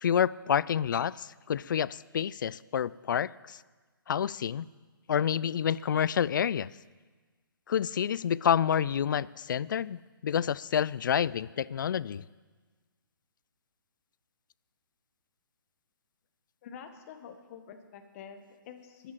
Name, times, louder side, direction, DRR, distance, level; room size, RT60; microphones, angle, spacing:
voice 1, 0.0-3.6 4.1-4.7 5.1-6.7 7.7-12.2, left 8 dB, 55° left, 20 dB, 0.4 m, -28 dB
voice 2, 16.6-19.1, left 7 dB, 35° left, 7 dB, 1.5 m, -47 dB
13.0 x 10.0 x 7.6 m, 1.4 s
figure-of-eight pair, 135°, 12 cm